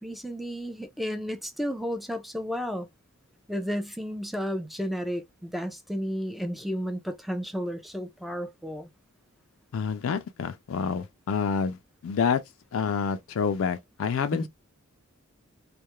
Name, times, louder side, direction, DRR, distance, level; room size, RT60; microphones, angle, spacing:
voice 1, 0.0-2.9 3.5-8.9 14.3-14.5, equal, ahead, 0.4 m, -32 dB
voice 2, 9.7-12.4 12.7-14.5, left 6 dB, 75° left, 0.4 m, -28 dB
2.3 x 2.1 x 2.9 m
head